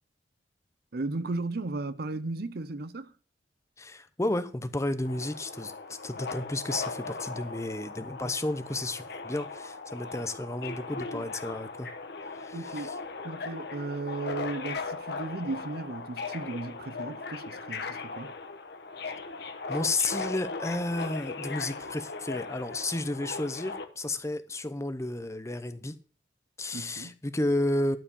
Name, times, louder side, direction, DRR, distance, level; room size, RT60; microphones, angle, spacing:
voice 1, 0.9-3.1 12.5-12.9 13.2-18.3 26.7-27.2, right 3 dB, 55° right, 0.6 m, -35 dB
voice 2, 3.8-11.9 12.3-12.9 19.7-25.9 26.6-28.0, left 2 dB, 15° left, 0.8 m, -32 dB
Subway metro underground, 5.0-23.8, left 4 dB, 60° left, 1.3 m, -38 dB
12.5 x 4.9 x 7.0 m
head